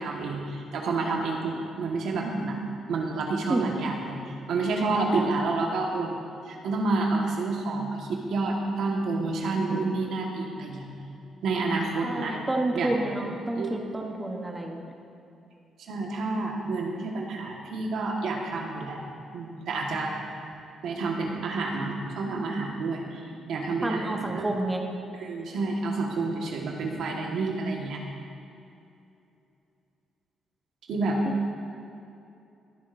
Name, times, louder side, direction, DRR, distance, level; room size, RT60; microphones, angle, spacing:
voice 1, 0.0-2.6 2.9-4.2 4.5-6.2 6.5-10.9 11.4-12.4 12.7-12.9 13.6-13.7 15.9-19.0 19.3-20.1 20.8-23.2 23.5-24.4 25.1-28.0 30.9-31.2, right 3 dB, 75° right, 0 dB, 1.6 m, -29 dB
voice 2, 3.5-3.8 5.1-5.3 12.0-14.9 23.8-24.8, right 2 dB, 15° right, 1 dB, 1.0 m, -29 dB
21.5 x 7.3 x 2.7 m, 2.7 s
cardioid pair, 90°, 0 cm